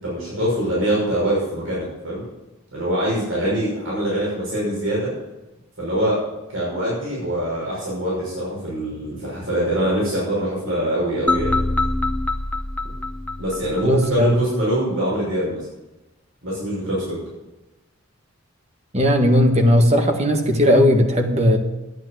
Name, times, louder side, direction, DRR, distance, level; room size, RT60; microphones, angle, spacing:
voice 1, 0.0-2.2 2.7-5.1 5.8-6.2 6.5-11.6 13.4-15.6 16.4-17.2, right 1 dB, 70° right, -6 dB, 6.1 m, -24 dB
sound 1, 11.3-14.3, left 2 dB, 5° left, 0.5 m, -24 dB
voice 2, 13.8-14.4 18.9-21.6, equal, 30° right, 4 dB, 1.6 m, -16 dB
12.0 x 9.0 x 7.8 m, 1.0 s
head